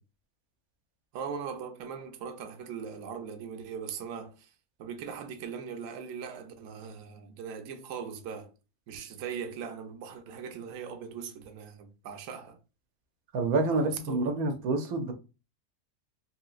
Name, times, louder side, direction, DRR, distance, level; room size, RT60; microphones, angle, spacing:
voice 1, 1.1-4.5 4.8-8.5 8.9-12.6 13.7-14.4, right 7 dB, 65° right, 0.9 m, -40 dB
voice 2, 13.3-15.1, right 3 dB, 85° right, 1.1 m, -28 dB
3.3 x 2.8 x 2.3 m
omnidirectional pair, 1.5 m